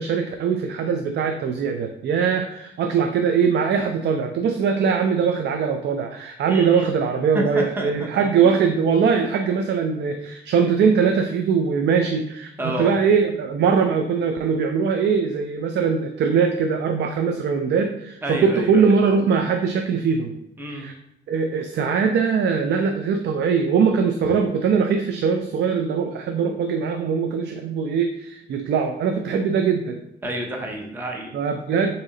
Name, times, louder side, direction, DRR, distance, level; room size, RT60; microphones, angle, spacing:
voice 1, 0.0-20.4 20.7-20.9 21.3-30.0 31.3-31.9, right 6 dB, 60° right, 6 dB, 0.4 m, -21 dB
voice 2, 6.5-6.9 7.3-8.1 12.6-12.9 18.2-19.0 20.6-20.9 30.2-31.3, right 1 dB, 10° right, 1 dB, 0.7 m, -29 dB
4.0 x 2.8 x 3.8 m, 0.81 s
cardioid pair, 90°, 20 cm